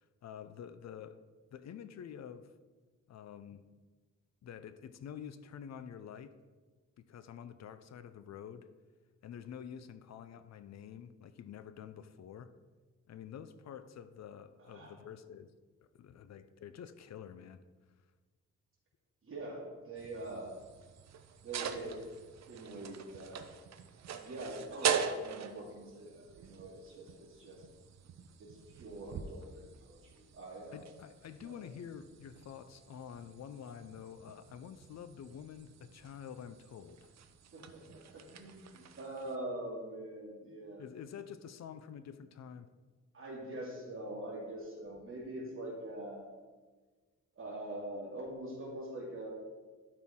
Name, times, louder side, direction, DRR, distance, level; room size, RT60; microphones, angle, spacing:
voice 1, 0.2-1.2 1.5-2.5 3.1-3.6 4.4-6.3 7.0-8.7 9.2-12.5 13.1-15.5 15.9-17.6 30.7-37.1 40.8-42.7, left 8 dB, 65° left, 12 dB, 0.5 m, -48 dB
voice 2, 14.6-14.9 19.2-20.5 21.4-22.0 22.5-23.4 24.2-27.6 28.4-30.8 31.4-31.6 37.5-40.8 43.1-46.3 47.4-49.3, right 1 dB, 45° right, -5 dB, 2.6 m, -44 dB
sound 1, 20.0-39.4, right 7 dB, 65° right, 0.6 m, -43 dB
12.5 x 4.5 x 3.7 m, 1.3 s
wide cardioid pair, 170°, 29 cm